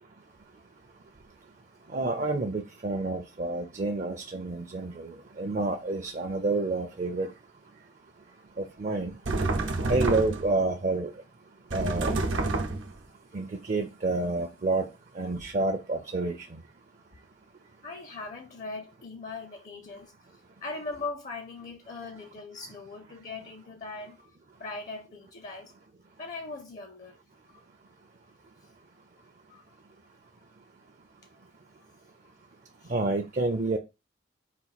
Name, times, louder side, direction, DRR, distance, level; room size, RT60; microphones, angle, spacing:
voice 1, 1.9-7.3 8.6-9.2 9.8-11.1 11.7-12.1 13.3-14.9 15.2-16.6 32.9-33.8, right 2 dB, 40° right, 0.5 m, -29 dB
sound 1, 9.3-10.6 11.7-13.0, right 2 dB, 90° right, 0.8 m, -28 dB
voice 2, 17.8-20.1 20.6-25.7 26.2-27.2 27.5-27.6 29.5-29.6 32.2-32.3 32.8-32.9, left 3 dB, 40° left, 0.5 m, -40 dB
4.0 x 2.5 x 4.1 m
head